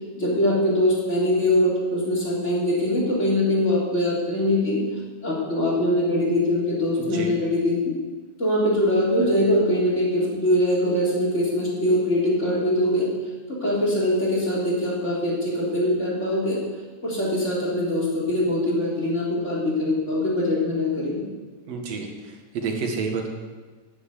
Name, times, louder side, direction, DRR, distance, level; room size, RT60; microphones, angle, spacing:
voice 1, 0.2-4.8 5.2-8.0 8.4-13.1 13.5-16.6 17.0-21.2, left 1 dB, 25° left, -5 dB, 3.4 m, -22 dB
voice 2, 7.0-7.3 21.7-23.3, right 5 dB, 60° right, 2 dB, 2.7 m, -29 dB
11.5 x 7.4 x 9.2 m, 1.3 s
omnidirectional pair, 3.4 m